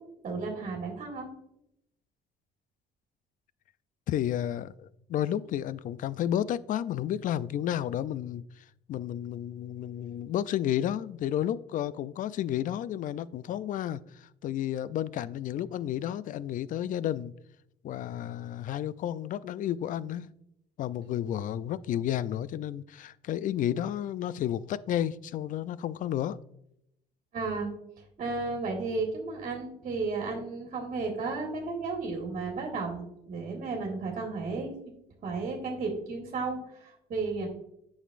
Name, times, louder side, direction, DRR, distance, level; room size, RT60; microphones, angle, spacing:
voice 1, 0.2-1.3 21.1-21.2 27.3-27.7 28.2-34.7 35.2-37.5, right 3 dB, 50° right, 0 dB, 1.9 m, -33 dB
voice 2, 4.1-17.3 17.8-20.3 20.8-26.4, left 11 dB, 50° left, 18 dB, 0.4 m, -32 dB
9.0 x 6.4 x 2.5 m, 0.77 s
cardioid pair, 110°, 17 cm